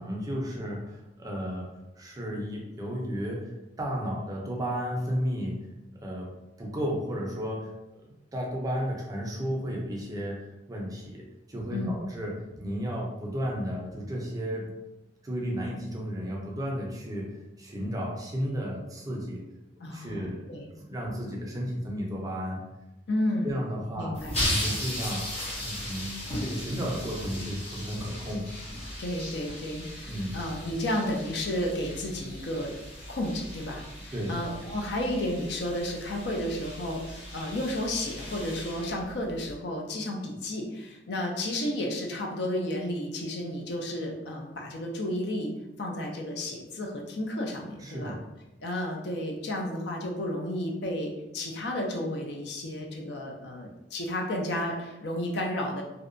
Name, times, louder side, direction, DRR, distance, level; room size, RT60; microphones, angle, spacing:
voice 1, 0.0-1.7 2.0-5.6 5.9-6.3 6.6-7.7 8.0-14.7 15.2-17.3 17.6-19.4 19.8-20.5 20.9-22.6 23.4-24.1 24.5-25.2 25.6-28.5 30.0-30.4 34.1-34.3 47.8-48.2, equal, 20° right, -2 dB, 0.5 m, -33 dB
voice 2, 19.8-20.7 23.1-23.6 24.0-24.8 29.0-32.7 33.1-45.5 45.8-48.2 48.6-55.8, left 1 dB, 70° left, 1 dB, 0.5 m, -32 dB
sound 1, 24.1-39.5, left 1 dB, 35° left, 0.9 m, -37 dB
2.7 x 2.1 x 2.5 m, 0.95 s
head